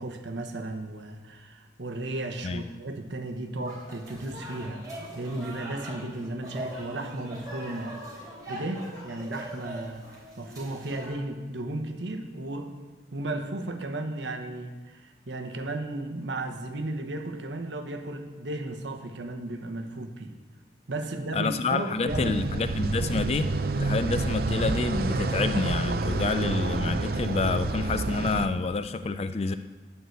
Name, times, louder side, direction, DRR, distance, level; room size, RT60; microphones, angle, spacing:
voice 1, 0.0-8.0 8.5-12.7 13.1-20.3 20.9-22.4 28.2-28.3, right 2 dB, 75° right, 5 dB, 1.0 m, -34 dB
sound 1, 3.6-11.1, right 1 dB, 20° right, 3.5 m, -41 dB
voice 2, 21.3-29.5, left 4 dB, 35° left, 11 dB, 0.3 m, -28 dB
sound 2, 22.1-28.5, right 3 dB, 50° right, 0.5 m, -28 dB
11.0 x 4.7 x 7.9 m, 1.3 s
head